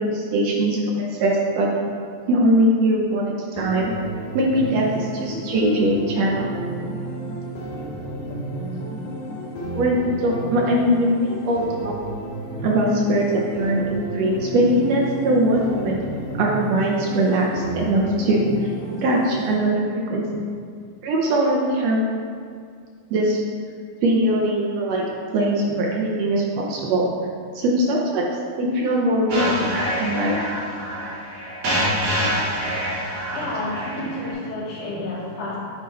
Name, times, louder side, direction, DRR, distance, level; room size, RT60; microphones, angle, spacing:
voice 1, 0.0-1.7 2.3-3.9 4.3-6.5 9.7-11.9 12.6-16.0 16.4-18.7 19.0-20.3 21.0-22.0 23.1-23.4 24.0-25.0 25.3-27.1 27.5-28.3 28.6-30.4, right 1 dB, 75° right, -2 dB, 1.6 m, -21 dB
sound 1, 3.6-19.6, right 1 dB, 70° left, 2.2 m, -32 dB
sound 2, 29.3-34.3, equal, 55° right, 2.6 m, -26 dB
voice 2, 33.3-35.6, left 1 dB, 90° left, -6 dB, 3.1 m, -30 dB
9.3 x 3.6 x 4.3 m, 2.1 s
omnidirectional pair, 3.4 m